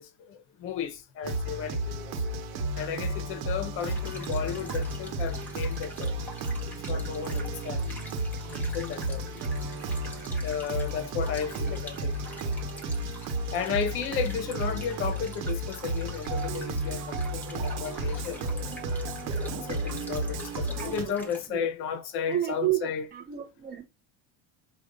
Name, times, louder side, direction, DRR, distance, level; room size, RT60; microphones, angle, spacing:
voice 1, 0.0-2.2 2.7-6.2 6.7-7.9 8.4-9.3 10.4-12.1 13.5-18.4 19.5-23.1, left 7 dB, 40° left, 0.6 m, -34 dB
sound 1, 1.2-21.0, right 1 dB, 80° right, 1.0 m, -32 dB
sound 2, 3.8-21.5, equal, 5° left, 0.8 m, -46 dB
voice 2, 11.6-12.0 20.6-21.7 22.3-23.8, right 13 dB, 30° right, 0.5 m, -32 dB
4.9 x 2.2 x 3.7 m
cardioid pair, 175°, 34 cm